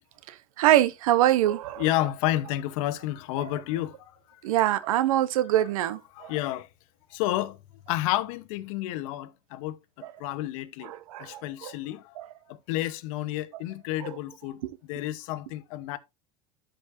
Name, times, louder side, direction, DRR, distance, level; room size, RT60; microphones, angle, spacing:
voice 1, 0.3-1.8 4.4-6.3 10.0-10.1 10.8-11.7 12.2-12.3 14.0-14.2 14.6-14.7, right 13 dB, 90° right, 0.9 m, -24 dB
voice 2, 1.8-4.4 6.1-6.7 7.1-7.6 7.9-12.1 12.5-16.0, left 15 dB, 70° left, 0.9 m, -31 dB
13.0 x 5.2 x 2.6 m
supercardioid pair, 125°, 17 cm